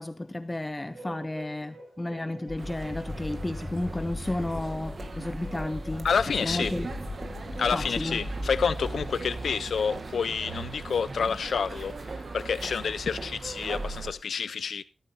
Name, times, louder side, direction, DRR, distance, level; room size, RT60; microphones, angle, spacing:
voice 1, 0.0-6.1 6.4-6.9 7.7-8.2, left 1 dB, 15° left, 0.5 m, -32 dB
sound 1, 0.9-9.2, right 1 dB, 85° right, 7.4 m, -49 dB
sound 2, 2.5-9.1, left 2 dB, 45° left, 5.6 m, -39 dB
sound 3, 2.6-14.1, right 3 dB, 40° right, 1.4 m, -39 dB
voice 2, 6.0-6.8 7.6-14.8, left 6 dB, 80° left, 0.5 m, -29 dB
14.5 x 13.5 x 2.6 m
wide cardioid pair, 175°, 0 cm